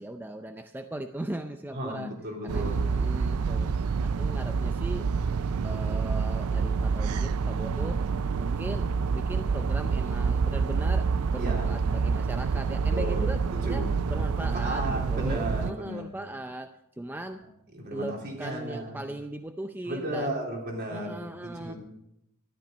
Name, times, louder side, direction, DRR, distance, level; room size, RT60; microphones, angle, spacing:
voice 1, 0.0-2.1 2.4-3.7 4.0-5.1 5.6-8.0 8.4-17.4 17.9-20.4 20.9-21.7, right 1 dB, 10° right, 7 dB, 0.5 m, -38 dB
voice 2, 1.7-2.8 11.4-11.7 12.9-13.3 13.7-13.9 14.4-16.0 17.7-19.0 19.9-21.8, right 1 dB, 50° right, -1 dB, 3.5 m, -34 dB
sound 1, 2.5-15.7, right 5 dB, 75° right, 0.4 m, -27 dB
13.5 x 12.0 x 5.2 m, 0.81 s
head